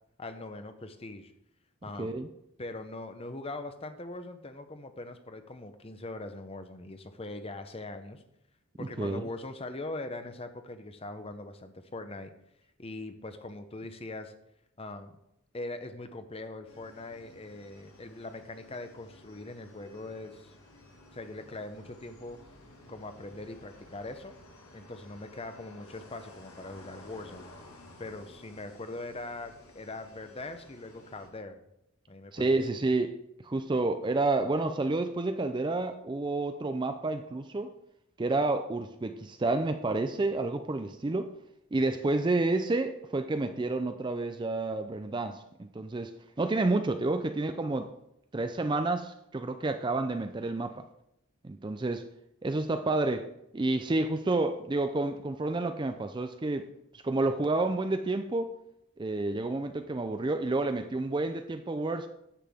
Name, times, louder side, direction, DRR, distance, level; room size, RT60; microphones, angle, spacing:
voice 1, 0.2-1.3 1.8-2.2 2.6-8.2 8.8-12.3 12.8-14.3 14.8-15.2 15.5-20.5 21.1-22.4 22.9-24.4 24.7-27.5 28.0-31.6 32.1-32.6, left 2 dB, 25° left, 9 dB, 0.7 m, -41 dB
voice 2, 2.0-2.3 8.8-9.3 32.3-33.1 33.4-37.7 38.2-41.3 41.7-46.1 46.4-47.9 48.3-50.8 51.4-52.0 52.4-53.3 53.5-56.6 57.0-58.5 59.0-62.1, right 2 dB, 20° right, 8 dB, 0.4 m, -29 dB
sound 1, 16.7-31.3, left 2 dB, 75° left, 1.8 m, -54 dB
10.0 x 7.8 x 3.5 m, 0.81 s
head